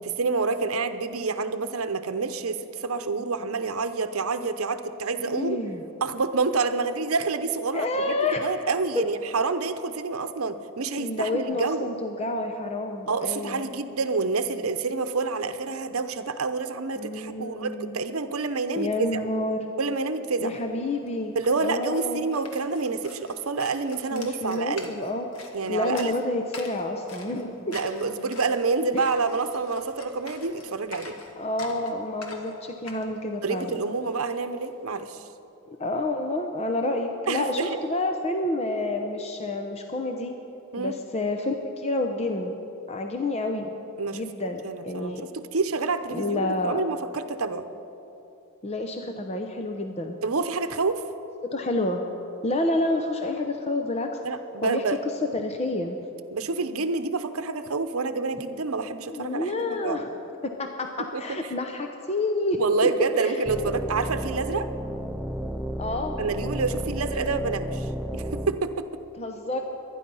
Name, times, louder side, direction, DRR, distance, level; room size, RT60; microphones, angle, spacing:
voice 1, 0.0-5.6 6.0-11.9 13.1-19.1 19.8-20.5 21.3-24.9 25.5-26.1 27.7-31.2 33.4-35.2 37.3-37.8 40.7-40.9 44.0-47.7 50.2-51.0 54.2-55.0 56.3-60.0 61.1-61.2 62.6-64.7 66.2-68.9, right 4 dB, 80° right, 10 dB, 0.8 m, -28 dB
voice 2, 5.2-5.8 7.7-8.4 11.0-13.7 17.0-18.0 18.7-19.7 20.4-22.3 24.1-25.3 25.7-27.7 28.9-29.0 31.4-33.8 35.7-40.3 40.8-42.6 42.9-43.8 44.1-45.2 46.1-46.8 48.6-50.2 51.4-52.0 52.4-54.2 54.6-55.0 55.3-56.0 59.1-60.1 60.4-62.6 63.2-63.8 65.8-66.2 69.2-69.6, left 2 dB, 30° left, 4 dB, 0.7 m, -29 dB
sound 1, 20.6-20.7 20.8-34.7, left 3 dB, 80° left, 1.8 m, -46 dB
sound 2, 63.4-68.6, right 1 dB, 5° right, 0.4 m, -32 dB
23.5 x 10.0 x 5.5 m, 2.9 s
head